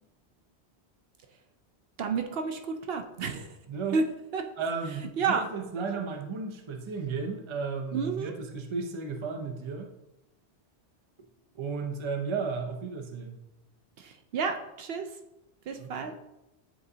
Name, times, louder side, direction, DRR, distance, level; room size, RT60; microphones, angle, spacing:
voice 1, 2.0-3.5 3.9-4.0 4.3-4.4 5.2-5.5 7.9-8.3 14.0-15.1 15.7-16.1, right 5 dB, 70° right, 5 dB, 0.7 m, -30 dB
voice 2, 3.7-4.0 4.6-9.9 11.5-13.4 15.8-16.1, right 5 dB, 35° right, 4 dB, 0.5 m, -34 dB
8.8 x 3.9 x 2.7 m, 0.92 s
omnidirectional pair, 1.1 m